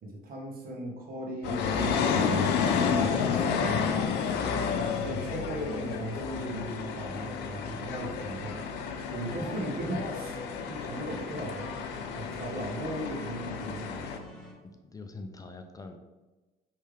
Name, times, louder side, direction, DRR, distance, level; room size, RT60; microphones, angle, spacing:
voice 1, 0.0-4.4 4.7-8.5 8.8-10.4 10.6-11.7 12.1-14.0, right 1 dB, 60° right, 0 dB, 1.2 m, -38 dB
sound 1, 1.4-14.2, left 6 dB, 85° left, 0.5 m, -31 dB
sound 2, 2.8-14.5, equal, ahead, 1.5 m, -47 dB
voice 2, 14.6-16.0, left 3 dB, 20° left, 5 dB, 0.4 m, -45 dB
4.9 x 3.3 x 3.3 m, 1.1 s
cardioid pair, 110°, 17 cm